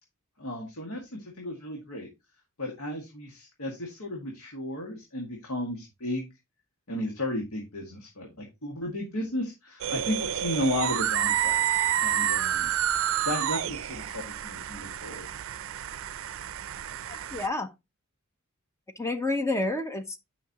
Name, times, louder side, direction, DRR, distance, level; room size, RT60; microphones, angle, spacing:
voice 1, 0.4-2.1 2.6-6.3 6.9-12.7 13.2-15.3, left 1 dB, 80° left, 1.9 m, -34 dB
sound 1, 9.8-17.5, right 10 dB, 65° right, 0.5 m, -29 dB
voice 2, 17.1-17.7 19.0-20.2, left 2 dB, 15° left, 0.8 m, -29 dB
9.8 x 5.7 x 2.9 m
head